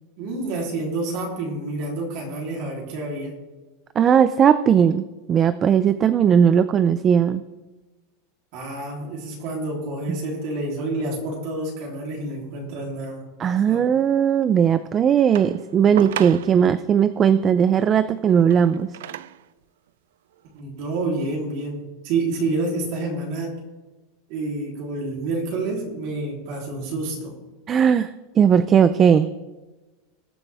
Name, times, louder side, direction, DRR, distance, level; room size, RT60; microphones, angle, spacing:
voice 1, 0.2-3.3 8.5-13.3 13.7-13.8 20.5-23.5 24.3-27.4, right 2 dB, 45° right, -2 dB, 3.1 m, -28 dB
voice 2, 4.0-7.4 13.4-18.9 27.7-29.3, right 8 dB, 20° right, 13 dB, 0.3 m, -18 dB
sound 1, 15.3-16.8 18.3-19.5 20.3-20.4, right 11 dB, 85° right, 0.5 m, -34 dB
20.5 x 7.7 x 3.4 m, 1.2 s
supercardioid pair, 165°, 0 cm